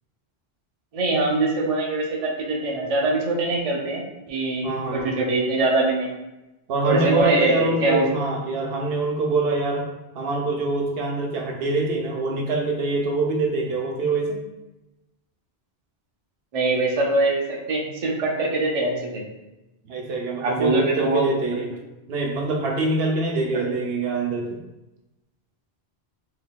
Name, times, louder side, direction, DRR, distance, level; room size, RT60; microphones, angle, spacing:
voice 1, 0.9-4.7 4.9-6.1 6.9-8.0 16.5-17.4 17.7-19.2 20.4-21.4, right 2 dB, 45° right, -1 dB, 0.6 m, -23 dB
voice 2, 4.6-5.1 6.7-9.9 10.1-14.4 19.8-21.7 22.1-24.6, right 3 dB, 75° right, 1 dB, 0.8 m, -25 dB
3.7 x 2.8 x 2.2 m, 0.98 s
omnidirectional pair, 1.1 m